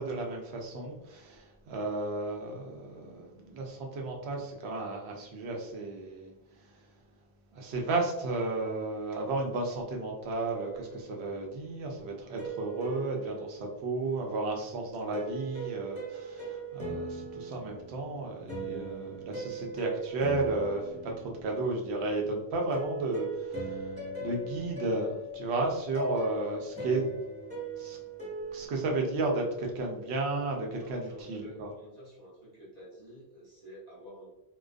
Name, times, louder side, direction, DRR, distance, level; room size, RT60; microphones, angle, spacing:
voice 1, 0.0-7.0 7.5-27.1 27.8-28.0 28.5-31.7, right 2 dB, 85° right, 1 dB, 0.9 m, -33 dB
sound 1, 10.5-11.6 12.4-14.2 15.1-21.8 22.7-28.7, right 2 dB, 5° left, 1.1 m, -39 dB
voice 2, 30.7-34.3, equal, 45° right, -7 dB, 0.9 m, -50 dB
2.3 x 2.2 x 2.4 m, 0.88 s
omnidirectional pair, 1.1 m